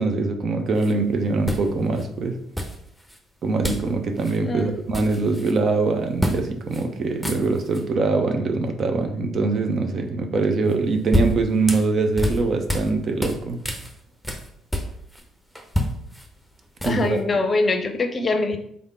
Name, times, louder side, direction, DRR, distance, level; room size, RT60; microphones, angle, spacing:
voice 1, 0.0-2.4 3.4-13.6 16.8-17.2, right 3 dB, 50° right, 5 dB, 0.6 m, -23 dB
sound 1, 0.8-0.9 1.4-2.1 2.6-3.2 3.6-3.9 4.2-4.4 4.7-5.6 6.2-6.4 6.7-6.8 7.1-7.8 10.7-12.9 13.2-15.2 15.6-17.2, equal, ahead, 0.9 m, -27 dB
voice 2, 4.4-4.7 16.8-18.6, left 3 dB, 35° left, 6 dB, 0.6 m, -23 dB
3.6 x 3.5 x 3.5 m, 0.70 s
hypercardioid pair, 50°, 0 cm